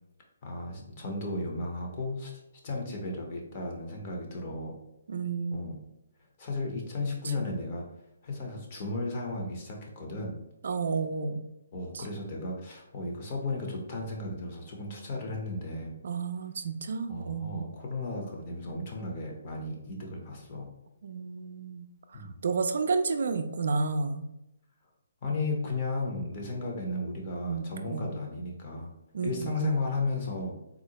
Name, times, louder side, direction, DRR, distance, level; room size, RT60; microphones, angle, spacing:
voice 1, 0.4-2.3 2.6-4.8 5.5-5.8 6.4-7.9 8.2-10.4 11.7-15.9 17.1-20.7 22.1-22.4 25.2-28.9 29.2-30.6, left 2 dB, 30° left, 0 dB, 0.7 m, -34 dB
voice 2, 5.1-5.7 7.4-7.5 10.6-11.4 11.9-12.0 16.0-17.7 21.0-21.9 22.4-24.3 27.5-27.6 27.9-28.2 29.1-29.7, right 4 dB, 60° right, 7 dB, 0.3 m, -31 dB
3.7 x 2.1 x 2.8 m, 0.88 s
hypercardioid pair, 165°, 0 cm